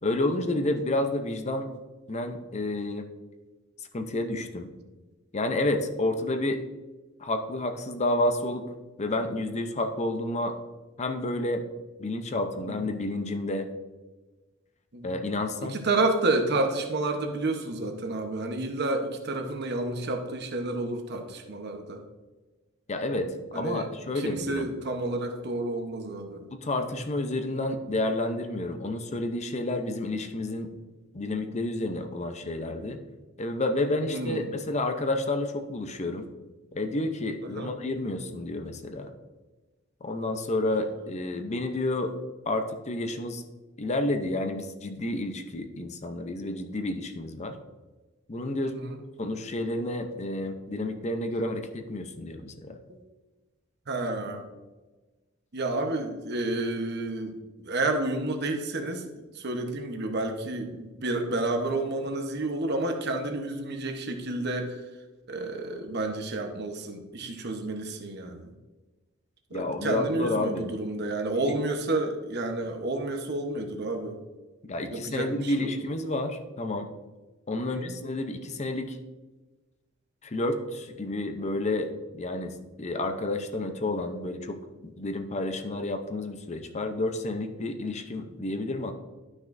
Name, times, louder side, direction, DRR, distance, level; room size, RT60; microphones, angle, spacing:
voice 1, 0.0-1.7 2.1-3.1 3.9-4.7 5.3-6.6 7.2-8.7 9.0-10.6 11.0-11.6 12.0-13.7 15.0-15.8 22.9-24.7 26.5-30.7 31.1-33.0 33.4-36.3 36.7-39.1 40.0-42.2 42.5-43.4 43.8-47.6 48.3-48.8 49.2-52.8 69.5-70.7 71.5-71.6 74.6-76.9 77.5-79.0 80.2-88.9, left 2 dB, 35° left, 7 dB, 0.7 m, -30 dB
voice 2, 15.6-22.0 23.5-23.9 24.2-26.5 26.8-27.0 34.1-34.5 37.4-37.7 48.6-49.0 52.9-53.0 53.9-54.4 55.5-64.8 65.3-68.5 69.5-74.2 74.9-75.7 77.6-77.9, right 2 dB, 55° right, 4 dB, 1.0 m, -30 dB
12.0 x 6.1 x 2.6 m, 1.2 s
head